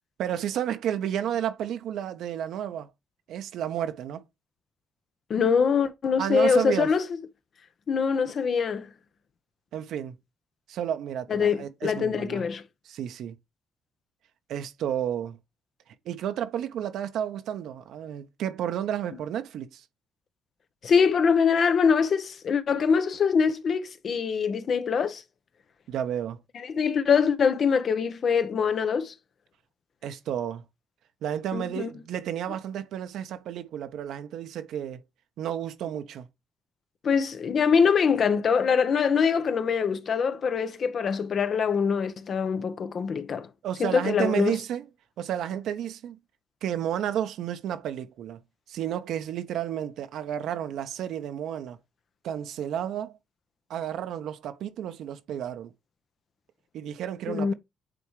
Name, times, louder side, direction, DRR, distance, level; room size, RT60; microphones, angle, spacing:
voice 1, 0.2-2.9 3.3-4.2 6.2-6.9 9.7-10.2 10.7-12.5 12.8-13.3 14.5-15.4 16.0-19.8 25.9-26.4 30.0-30.6 31.2-35.0 35.4-36.3 43.6-44.9 45.2-46.2 46.6-48.4 48.7-51.8 52.2-53.2 53.7-55.7 56.7-57.5, right 10 dB, 80° right, 1.0 m, -31 dB
voice 2, 5.3-7.0 7.9-8.9 11.3-12.6 20.8-25.2 26.5-29.1 31.5-31.9 37.0-43.5 43.8-44.6 57.3-57.5, left 6 dB, 55° left, 0.9 m, -24 dB
8.9 x 3.6 x 3.2 m
cardioid pair, 90°, 0 cm